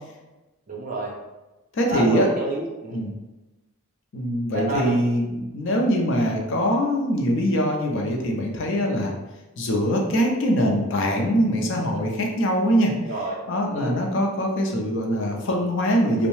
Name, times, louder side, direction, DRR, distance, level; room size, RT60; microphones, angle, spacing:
voice 1, 0.7-1.2 1.9-3.0 4.5-4.9 13.0-13.4 13.7-14.0, right 2 dB, 40° right, -2 dB, 0.6 m, -29 dB
voice 2, 1.7-2.3 2.9-3.1 4.1-9.1 9.6-12.9 13.5-16.3, equal, 55° left, 0 dB, 0.5 m, -23 dB
2.6 x 2.0 x 3.0 m, 1.1 s
head